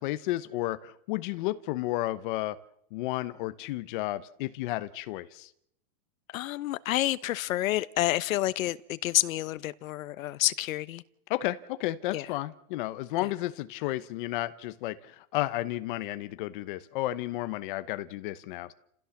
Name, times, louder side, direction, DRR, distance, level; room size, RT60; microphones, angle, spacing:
voice 1, 0.0-2.6 2.9-5.5 11.3-18.7, left 16 dB, 40° left, 1.0 m, -32 dB
voice 2, 6.3-11.0 12.1-12.3 13.2-13.3, left 15 dB, 75° left, 1.1 m, -29 dB
29.5 x 15.5 x 7.2 m
supercardioid pair, 180°, 41 cm